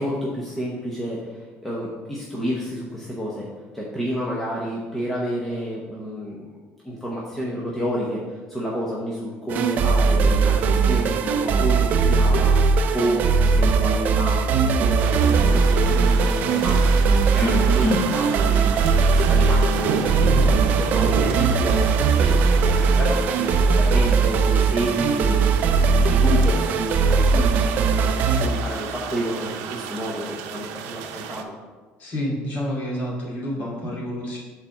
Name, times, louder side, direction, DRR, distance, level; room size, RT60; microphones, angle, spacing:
voice 1, 0.0-3.5 3.7-6.5 6.8-16.8 17.3-21.9 22.2-25.4 25.7-31.5, equal, 5° left, -5 dB, 0.9 m, -29 dB
sound 1, 9.5-28.5, right 4 dB, 40° right, 0.5 m, -19 dB
sound 2, 15.0-31.4, right 7 dB, 90° right, 0.6 m, -32 dB
voice 2, 17.4-18.0 28.3-28.6 32.0-34.4, left 1 dB, 40° left, -5 dB, 2.3 m, -27 dB
6.8 x 4.3 x 5.4 m, 1.4 s
cardioid pair, 165°, 4 cm